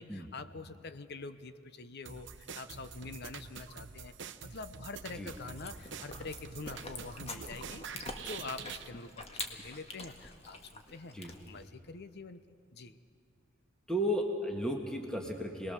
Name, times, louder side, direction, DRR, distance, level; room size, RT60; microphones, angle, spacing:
voice 1, 0.0-12.4 12.7-13.0, left 3 dB, 55° left, 11 dB, 0.8 m, -46 dB
sound 1, 2.1-8.9, right 6 dB, 65° right, 0.8 m, -46 dB
Chewing mastication, 5.6-11.7, left 2 dB, 30° left, 1.8 m, -46 dB
voice 2, 13.9-15.7, equal, 5° left, 1 dB, 1.7 m, -34 dB
27.5 x 20.0 x 6.8 m, 2.2 s
head